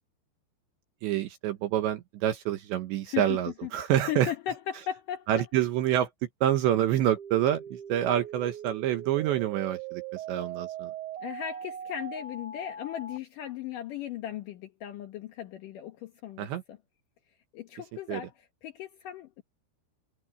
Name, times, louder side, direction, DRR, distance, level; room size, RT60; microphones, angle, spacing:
voice 1, 1.0-4.3 5.3-6.1 6.4-10.9 16.4-16.6 18.1-18.2, right 11 dB, 75° right, 3.2 m, -27 dB
voice 2, 3.1-3.7 4.1-5.3 11.2-16.8 17.5-18.3 18.6-19.4, left 11 dB, 85° left, 1.8 m, -37 dB
sound 1, 7.2-13.2, right 8 dB, 45° right, 6.7 m, -40 dB
omnidirectional pair, 5.6 m